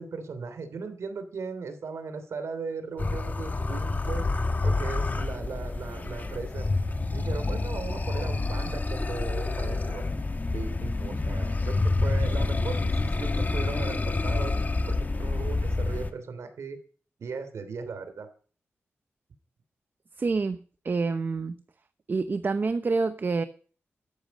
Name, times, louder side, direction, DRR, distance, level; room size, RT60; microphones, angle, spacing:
voice 1, 0.0-4.3 4.6-6.7 7.1-10.0 10.5-14.5 14.9-16.8 17.2-18.3, right 5 dB, 80° right, 10 dB, 3.1 m, -37 dB
sound 1, 2.6-7.3, equal, 5° left, 3.9 m, -49 dB
sound 2, 3.0-16.1, left 3 dB, 35° left, 1.7 m, -28 dB
voice 2, 20.2-20.6 20.8-21.5 22.1-23.4, right 4 dB, 45° right, 11 dB, 0.9 m, -27 dB
13.5 x 12.0 x 5.3 m, 0.42 s
wide cardioid pair, 85°, 5 cm